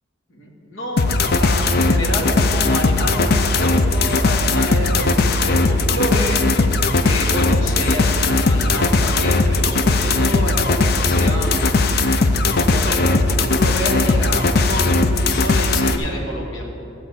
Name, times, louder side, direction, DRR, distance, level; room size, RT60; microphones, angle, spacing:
voice 1, 0.3-11.8 12.4-16.7, equal, 70° left, -2 dB, 2.1 m, -28 dB
sound 1, 1.0-16.0, left 3 dB, 50° left, 0.5 m, -18 dB
13.5 x 4.5 x 8.3 m, 3.0 s
head